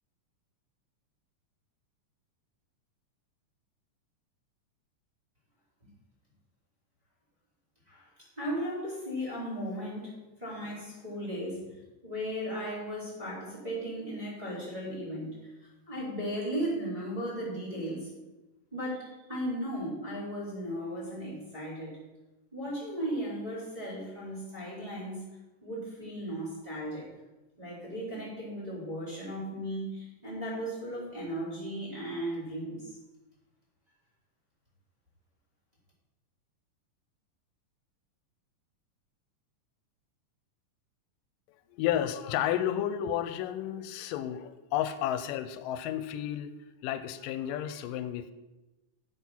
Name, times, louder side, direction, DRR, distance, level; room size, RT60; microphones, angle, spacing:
voice 1, 8.4-10.1 10.4-11.6 12.0-18.1 18.7-22.0 22.5-25.2 25.6-27.0 27.6-33.0, equal, 10° right, -9 dB, 4.2 m, -36 dB
voice 2, 41.7-46.5 46.8-48.3, left 11 dB, 90° left, 12 dB, 2.2 m, -32 dB
8.1 x 7.8 x 6.0 m, 1.1 s
omnidirectional pair, 3.8 m